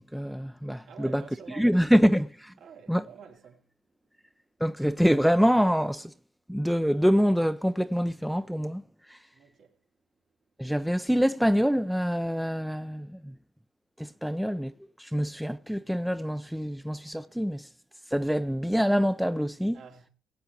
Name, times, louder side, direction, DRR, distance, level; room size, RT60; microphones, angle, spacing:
voice 1, 0.0-1.2 1.5-2.3 2.9-3.1 4.6-6.1 6.5-8.8 9.1-9.2 10.6-13.3 14.0-14.7 15.0-17.7 18.1-19.8, equal, ahead, 0.6 m, -25 dB
voice 2, 0.9-2.1 2.6-3.7 9.3-9.8 19.7-20.1, right 6 dB, 75° right, 3.3 m, -48 dB
21.5 x 8.0 x 2.9 m
cardioid pair, 90°, 0 cm